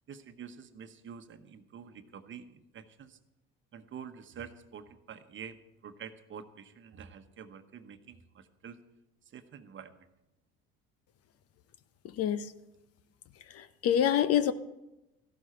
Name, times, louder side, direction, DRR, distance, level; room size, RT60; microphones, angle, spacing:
voice 1, 0.1-3.2 3.7-5.6 5.8-8.8 9.3-10.0, right 7 dB, 40° right, 9 dB, 1.1 m, -47 dB
voice 2, 12.1-12.5 13.5-14.5, left 10 dB, 50° left, 14 dB, 0.8 m, -26 dB
14.5 x 12.0 x 4.4 m, 0.95 s
hypercardioid pair, 75°, 30 cm